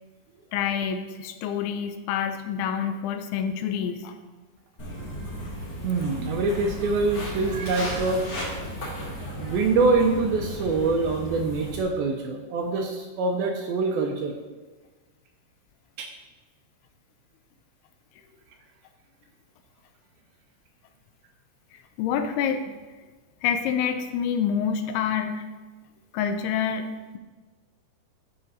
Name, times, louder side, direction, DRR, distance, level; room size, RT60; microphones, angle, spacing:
voice 1, 0.5-4.1 21.7-22.7 23.4-25.5 26.1-27.2, left 7 dB, 80° left, 8 dB, 2.4 m, -27 dB
Walk footsteps, 4.8-11.8, equal, 50° left, 1.2 m, -35 dB
voice 2, 5.8-8.3 9.4-14.3 16.0-16.1, right 3 dB, 85° right, 3 dB, 2.2 m, -25 dB
13.5 x 5.6 x 2.7 m, 1.3 s
omnidirectional pair, 4.7 m